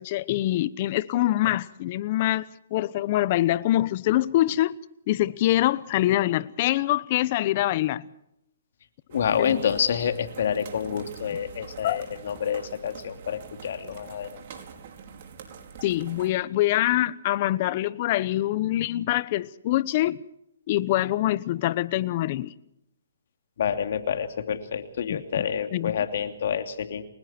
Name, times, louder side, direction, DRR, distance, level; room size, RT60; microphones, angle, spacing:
voice 1, 0.0-4.7 5.1-8.1 9.4-9.6 11.8-12.0 15.8-20.2 20.7-22.5 25.1-25.4 25.7-26.0, left 15 dB, 40° left, 1.0 m, -24 dB
voice 2, 9.1-14.4 23.6-27.0, left 8 dB, 60° left, 2.9 m, -28 dB
sound 1, 9.1-16.3, right 6 dB, 45° right, 4.7 m, -45 dB
30.0 x 21.0 x 4.5 m
hypercardioid pair, 150°, 0 cm